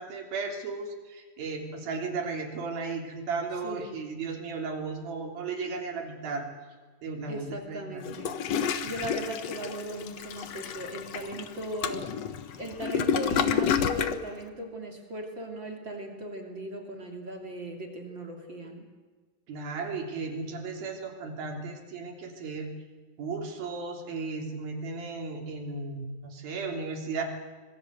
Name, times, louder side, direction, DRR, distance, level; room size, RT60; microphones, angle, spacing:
voice 1, 0.0-6.4 7.0-8.0 19.5-22.7 23.2-27.2, right 4 dB, 65° right, 2 dB, 4.9 m, -35 dB
voice 2, 7.3-8.3 8.8-12.1 12.6-18.9, right 1 dB, 30° right, 2 dB, 3.0 m, -37 dB
Toilet flush, 8.0-14.2, left 7 dB, 75° left, 1.5 m, -30 dB
26.0 x 21.0 x 8.0 m, 1.4 s
omnidirectional pair, 4.7 m